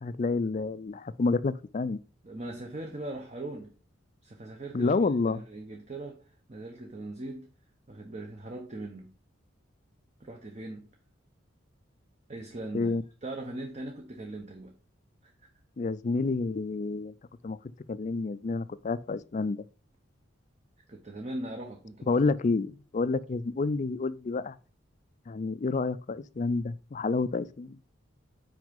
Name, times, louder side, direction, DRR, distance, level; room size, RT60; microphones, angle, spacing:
voice 1, 0.0-2.0 4.7-5.4 12.7-13.0 15.8-17.1 17.4-17.6 17.9-19.6 22.1-24.6 25.3-27.8, left 3 dB, 40° left, 0.4 m, -29 dB
voice 2, 2.2-3.7 4.2-7.5 7.9-9.1 10.2-10.9 12.3-12.9 13.2-14.7 15.2-15.5 20.9-22.2 23.0-23.1, right 2 dB, 35° right, 0.9 m, -40 dB
6.2 x 4.9 x 5.2 m
head